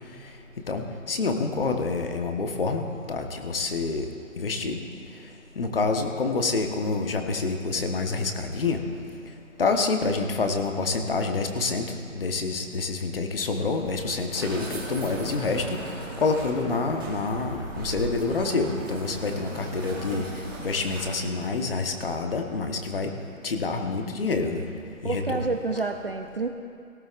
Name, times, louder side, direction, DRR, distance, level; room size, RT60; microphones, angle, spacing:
voice 1, 0.7-2.8 3.1-4.1 4.4-4.8 5.6-8.8 9.6-15.8 16.2-20.3 20.6-23.1 23.4-24.6 25.0-25.5, left 3 dB, 40° left, 4 dB, 1.2 m, -27 dB
sound 1, 13.7-21.6, right 2 dB, 15° right, 1.1 m, -37 dB
voice 2, 25.0-26.5, right 3 dB, 45° right, 5 dB, 0.5 m, -29 dB
18.0 x 16.5 x 2.5 m, 2.4 s
hypercardioid pair, 170°, 41 cm